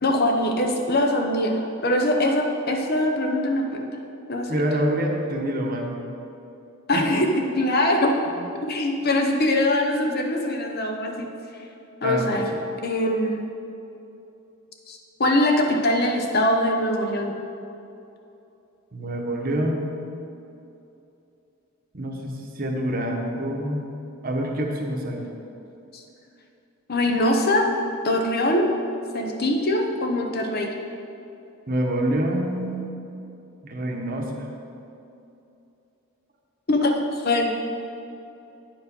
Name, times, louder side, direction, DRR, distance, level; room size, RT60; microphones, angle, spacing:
voice 1, 0.0-3.8 4.3-4.6 6.9-7.3 7.6-8.1 8.6-11.3 12.0-12.5 12.8-13.4 14.9-17.3 26.9-27.7 28.0-28.7 29.1-30.7 36.7-37.5, left 1 dB, 45° left, 2 dB, 0.7 m, -22 dB
voice 2, 4.5-6.0 6.9-7.3 8.3-8.5 12.0-12.6 18.9-20.0 21.9-23.9 24.2-25.2 31.7-32.9 33.6-34.5, right 1 dB, 40° right, 1 dB, 1.0 m, -27 dB
9.4 x 4.9 x 5.3 m, 2.8 s
head